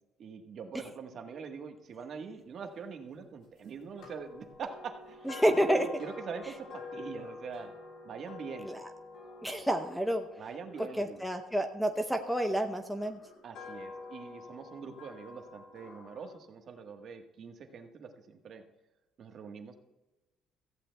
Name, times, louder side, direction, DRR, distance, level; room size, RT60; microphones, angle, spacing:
voice 1, 0.2-7.7 8.0-8.7 10.4-11.3 13.4-18.6 19.2-19.8, right 5 dB, 45° right, 5 dB, 1.3 m, -43 dB
sound 1, 4.0-12.1 12.9-16.4, left 3 dB, 60° left, 3.7 m, -48 dB
voice 2, 5.3-5.8 8.7-8.8 9.4-10.2 11.0-13.2, equal, ahead, 6 dB, 0.7 m, -29 dB
16.5 x 14.5 x 2.3 m, 1.1 s
cardioid pair, 140°, 0 cm